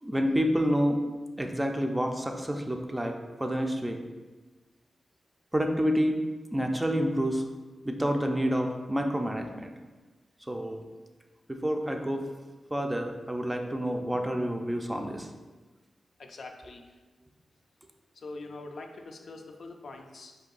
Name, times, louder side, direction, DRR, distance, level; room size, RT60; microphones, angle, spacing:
voice 1, 0.0-1.0 1.4-3.1 3.4-4.0 5.5-6.2 6.5-7.4 7.8-9.7 10.5-10.9 11.5-12.3 12.7-15.3, equal, 10° right, 3 dB, 0.4 m, -28 dB
voice 2, 16.2-16.8 18.2-20.4, left 3 dB, 65° left, 4 dB, 0.4 m, -43 dB
4.4 x 2.7 x 3.9 m, 1.3 s
wide cardioid pair, 90°, 0 cm